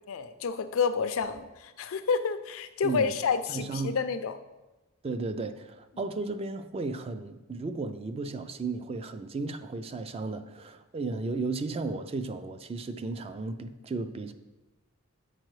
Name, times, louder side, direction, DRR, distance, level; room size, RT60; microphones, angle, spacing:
voice 1, 0.1-4.3, left 5 dB, 80° left, 11 dB, 0.4 m, -29 dB
voice 2, 3.5-4.0 5.0-14.3, right 3 dB, 30° right, 10 dB, 0.3 m, -34 dB
7.6 x 4.6 x 3.1 m, 1.1 s
head